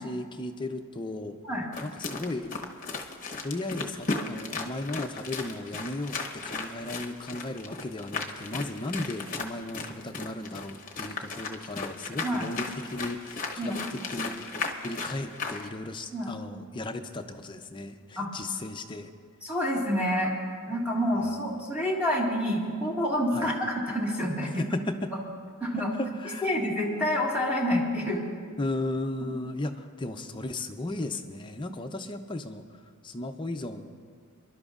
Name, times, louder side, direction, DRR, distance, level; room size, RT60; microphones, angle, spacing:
voice 1, 0.0-1.4 1.8-2.5 3.4-13.7 14.1-14.5 14.8-19.1 23.3-23.5 24.6-25.1 26.2-26.5 28.6-32.6 33.0-33.9, left 2 dB, 20° left, 6 dB, 0.5 m, -35 dB
sound 1, 1.7-15.7, left 3 dB, 35° left, 0.9 m, -36 dB
voice 2, 19.4-20.3 20.7-24.7 25.1-25.2 25.6-25.9 26.4-28.2 29.2-29.3, equal, 5° right, -4 dB, 1.7 m, -28 dB
29.0 x 11.5 x 2.5 m, 2.1 s
head